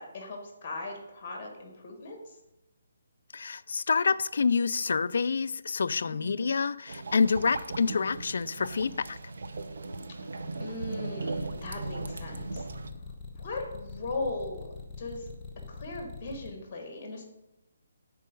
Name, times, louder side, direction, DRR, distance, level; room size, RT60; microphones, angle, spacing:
voice 1, 0.0-2.4 6.1-6.5 10.6-12.7 13.4-14.7 15.0-15.3 15.7-17.2, left 2 dB, 20° left, 1.6 m, -38 dB
voice 2, 3.3-9.2, left 5 dB, 55° left, 0.3 m, -27 dB
sound 1, 6.9-12.9, right 3 dB, 60° right, 0.7 m, -38 dB
sound 2, 11.4-16.5, left 4 dB, 5° left, 0.9 m, -43 dB
11.0 x 4.5 x 5.3 m
hypercardioid pair, 175°, 0 cm